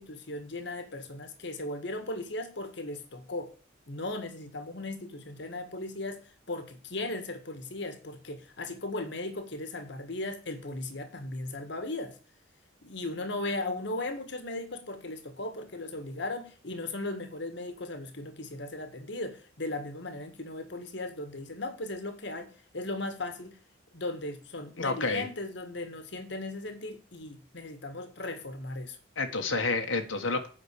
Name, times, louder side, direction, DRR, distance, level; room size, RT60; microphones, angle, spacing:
voice 1, 0.0-3.5 3.9-12.2 12.8-23.6 23.9-29.0, left 2 dB, 65° left, 8 dB, 1.7 m, -37 dB
voice 2, 24.8-25.2 29.2-30.5, left 3 dB, 85° left, 4 dB, 1.7 m, -29 dB
9.0 x 6.0 x 8.3 m, 0.39 s
head